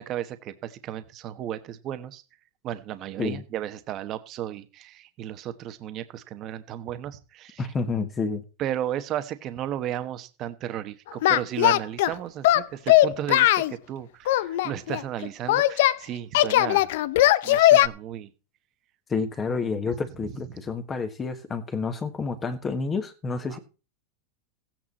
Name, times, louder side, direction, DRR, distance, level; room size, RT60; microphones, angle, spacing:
voice 1, 0.0-2.2 2.6-7.6 8.6-16.9 17.4-18.3 20.2-20.3 23.5-23.6, right 11 dB, 30° right, 11 dB, 1.1 m, -34 dB
voice 2, 7.6-8.4 19.1-23.6, left 4 dB, 15° left, 8 dB, 1.3 m, -29 dB
Singing, 11.2-12.1 12.4-13.7 14.3-16.0 16.3-17.9, left 14 dB, 60° left, 0.6 m, -19 dB
15.5 x 8.9 x 4.2 m, 0.33 s
supercardioid pair, 165°, 0 cm